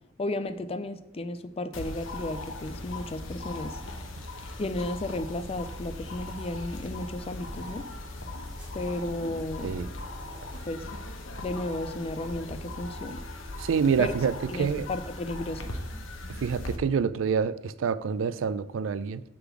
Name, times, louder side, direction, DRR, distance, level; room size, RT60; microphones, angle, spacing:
voice 1, 0.2-3.8 4.6-7.9 8.7-9.8 10.6-10.8 11.4-13.2 14.0-15.7, left 2 dB, 30° left, 0.4 m, -34 dB
sound 1, 1.7-16.8, left 2 dB, 75° left, 0.9 m, -39 dB
sound 2, 3.3-10.6, equal, 5° right, 2.1 m, -47 dB
voice 2, 13.6-14.3 14.6-14.9 16.4-19.2, right 6 dB, 75° right, 0.4 m, -27 dB
6.8 x 3.8 x 6.0 m
head